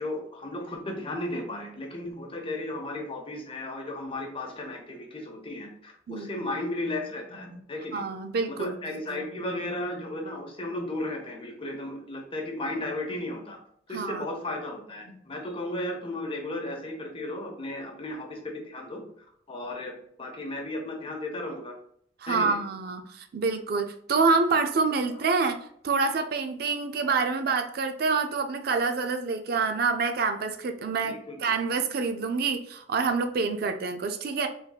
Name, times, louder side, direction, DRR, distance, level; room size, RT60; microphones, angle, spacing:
voice 1, 0.0-8.0 8.5-13.6 13.9-19.0 19.5-19.9 20.2-21.7 22.3-22.6 25.3-25.4 31.0-31.5, left 1 dB, 30° left, 2 dB, 0.9 m, -35 dB
voice 2, 6.1-6.4 7.9-8.8 9.1-9.2 13.9-14.2 22.2-25.6 25.8-34.5, right 4 dB, 55° right, 7 dB, 0.4 m, -27 dB
4.5 x 3.6 x 2.3 m, 0.65 s
head